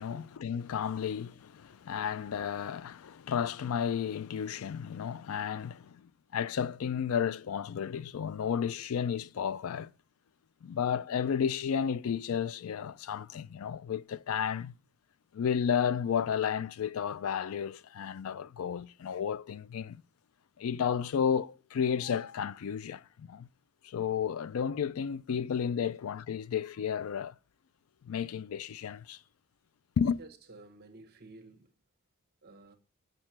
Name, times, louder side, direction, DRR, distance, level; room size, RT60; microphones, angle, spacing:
voice 1, 0.0-9.9 10.6-14.7 15.3-20.0 20.6-23.5 23.8-27.3 28.0-29.2 30.0-30.2, left 7 dB, 70° left, 0.4 m, -32 dB
voice 2, 30.2-31.7 32.4-32.8, right 2 dB, 45° right, 1.1 m, -52 dB
6.6 x 6.4 x 5.9 m
head